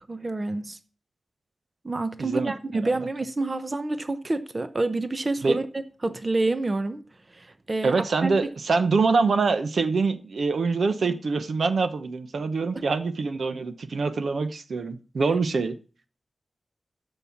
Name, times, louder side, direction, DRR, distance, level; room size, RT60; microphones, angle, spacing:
voice 1, 0.1-0.8 1.8-7.0 7.3-8.0 8.2-8.3, right 2 dB, 35° right, 0.8 m, -28 dB
voice 2, 2.2-2.5 5.4-5.6 7.8-15.7, right 4 dB, 80° right, 0.9 m, -24 dB
13.5 x 5.5 x 5.8 m
wide cardioid pair, 120°, 0 cm